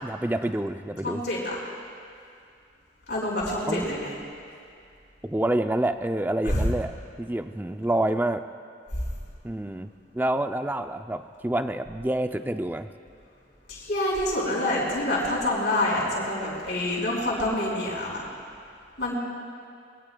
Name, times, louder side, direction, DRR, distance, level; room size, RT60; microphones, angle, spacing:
voice 1, 0.0-1.3 3.7-3.9 5.2-6.9 7.2-8.4 9.4-12.9, right 1 dB, 10° right, 8 dB, 0.4 m, -27 dB
voice 2, 1.0-1.6 3.1-4.1 6.4-6.6 13.7-18.3 19.0-19.1, left 1 dB, 60° left, -4 dB, 4.9 m, -27 dB
23.5 x 21.5 x 2.3 m, 2.3 s
head